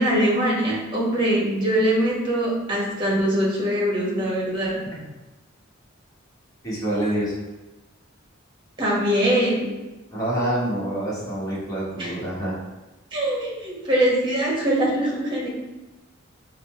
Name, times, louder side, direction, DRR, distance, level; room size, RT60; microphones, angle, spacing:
voice 1, 0.0-4.8 8.8-9.7 12.0-12.1 13.1-15.5, right 1 dB, 25° right, -4 dB, 1.1 m, -22 dB
voice 2, 6.6-7.3 10.1-12.6, right 1 dB, 20° left, -8 dB, 1.3 m, -26 dB
4.1 x 2.1 x 4.3 m, 1.1 s
head